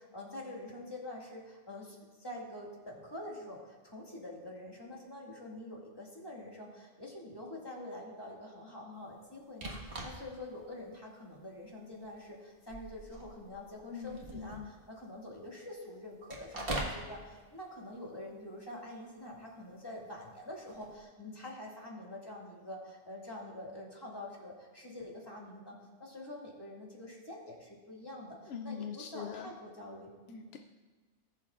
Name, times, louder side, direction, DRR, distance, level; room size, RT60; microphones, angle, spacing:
voice 1, 0.0-30.5, left 1 dB, 20° left, -3 dB, 2.0 m, -46 dB
sound 1, 9.5-10.4 10.9-11.0 11.9-12.2 12.5-14.8 16.3-17.0 20.7-21.0, right 1 dB, 60° right, 1.7 m, -41 dB
voice 2, 13.9-14.7 28.5-29.5, left 8 dB, 75° left, 5 dB, 0.8 m, -42 dB
19.5 x 7.1 x 2.4 m, 1.4 s
omnidirectional pair, 1.1 m